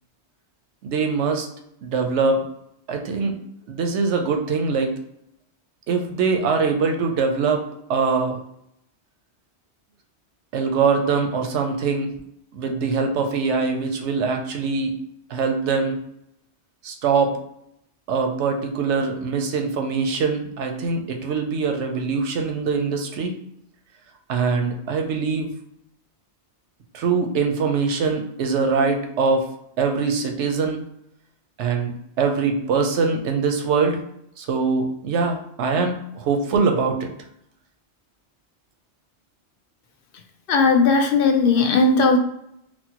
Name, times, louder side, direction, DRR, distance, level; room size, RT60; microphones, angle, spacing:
voice 1, 0.8-1.5 1.8-2.4 2.9-3.4 3.7-4.9 5.9-7.6 7.9-8.4 10.5-12.1 12.5-14.9 15.3-16.0 16.8-17.3 18.1-23.3 24.3-25.5 26.9-29.5 29.8-30.8 31.6-34.0 34.4-37.1, right 4 dB, 85° right, 4 dB, 0.9 m, -23 dB
voice 2, 40.5-42.2, left 4 dB, 60° left, 4 dB, 0.7 m, -17 dB
4.2 x 2.0 x 2.8 m, 0.75 s
omnidirectional pair, 1.2 m